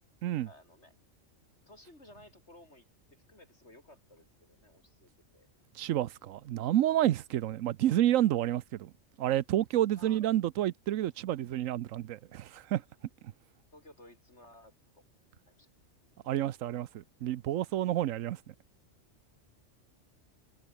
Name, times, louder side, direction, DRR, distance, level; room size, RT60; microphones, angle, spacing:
voice 1, 0.5-0.9 1.7-5.5 7.3-7.5 9.9-10.3 13.7-15.0 15.5-15.7, left 1 dB, 60° left, 8.3 m, -57 dB
voice 2, 5.8-8.9 9.2-12.8 16.3-18.5, right 13 dB, 90° right, 1.1 m, -29 dB
omnidirectional pair, 1.3 m